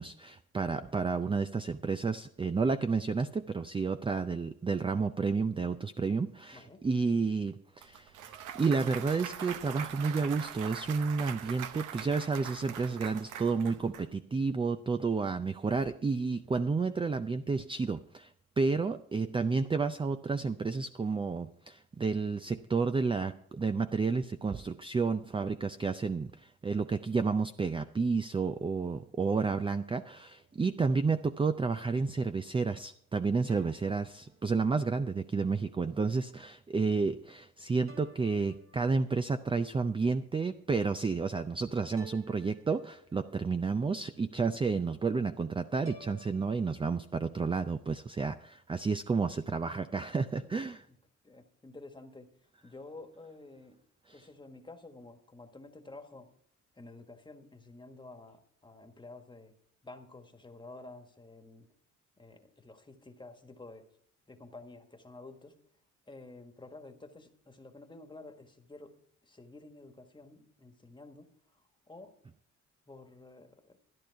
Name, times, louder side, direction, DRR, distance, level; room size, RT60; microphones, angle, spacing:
voice 1, 0.0-50.8, right 4 dB, 15° right, 10 dB, 0.4 m, -31 dB
voice 2, 6.5-6.8 50.3-51.0 51.2-52.3 52.6-53.8 54.1-56.3 56.7-59.5 59.8-61.7 62.2-63.9 64.3-65.6 66.1-69.0 69.2-71.6 71.9-72.1 72.9-73.8, left 2 dB, 15° left, 6 dB, 1.5 m, -51 dB
Clapping / Cheering / Applause, 7.8-14.0, right 9 dB, 90° right, 0.9 m, -42 dB
sound 1, 29.4-31.1 33.5-35.2 37.9-39.4 42.0-43.6 45.8-46.7, right 4 dB, 45° right, 2.4 m, -55 dB
13.5 x 10.5 x 4.6 m, 0.66 s
cardioid pair, 90°, 30 cm